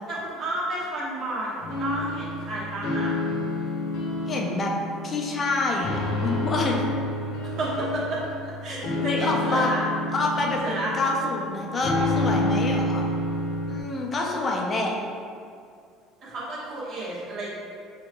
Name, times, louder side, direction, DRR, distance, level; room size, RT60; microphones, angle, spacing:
voice 1, 0.1-3.2 7.6-9.9 10.6-10.9 16.2-17.6, right 1 dB, 40° right, -6 dB, 1.1 m, -31 dB
sound 1, 1.6-13.8, left 2 dB, 75° left, 1.0 m, -29 dB
voice 2, 4.3-4.7 5.0-6.8 9.0-9.7 10.1-13.0 13.7-14.9, left 2 dB, 25° left, -1 dB, 0.5 m, -27 dB
6.6 x 2.9 x 2.2 m, 2.3 s
cardioid pair, 150°, 0 cm